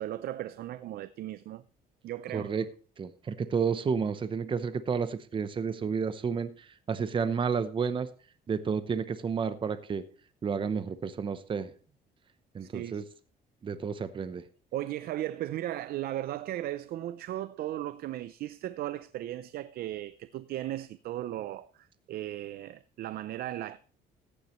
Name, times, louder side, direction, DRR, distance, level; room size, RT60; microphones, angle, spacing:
voice 1, 0.0-1.6 2.0-2.5 12.6-13.0 14.7-23.8, right 13 dB, 65° right, 0.5 m, -36 dB
voice 2, 2.3-2.7 3.0-8.1 8.5-10.0 10.4-11.7 12.5-13.0 13.6-14.4, right 6 dB, 30° right, 0.8 m, -31 dB
15.0 x 10.0 x 3.1 m
cardioid pair, 110°, 17 cm